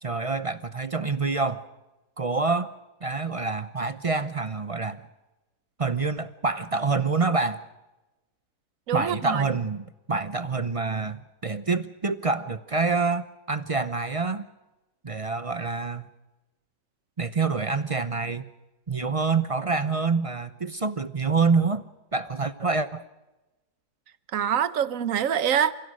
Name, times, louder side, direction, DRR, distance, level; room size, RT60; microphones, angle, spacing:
voice 1, 0.0-1.6 2.2-2.7 3.0-5.1 5.8-7.6 8.9-14.5 15.0-16.1 17.2-18.4 18.9-21.8 22.1-23.0, right 4 dB, 40° right, 13 dB, 0.5 m, -26 dB
voice 2, 8.9-9.4 24.3-25.7, right 9 dB, 60° right, 14 dB, 1.3 m, -25 dB
29.0 x 16.5 x 6.2 m, 1.0 s
omnidirectional pair, 1.7 m